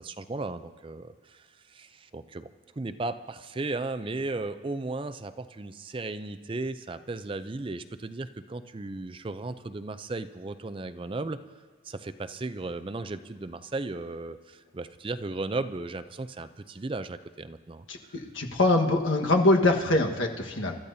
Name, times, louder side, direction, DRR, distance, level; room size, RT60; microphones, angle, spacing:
voice 1, 0.0-2.5 2.8-11.4 11.8-18.2, right 2 dB, 25° right, 11 dB, 0.4 m, -35 dB
voice 2, 17.9-20.7, left 2 dB, 85° left, 2 dB, 1.4 m, -23 dB
28.0 x 13.5 x 2.7 m, 1.6 s
head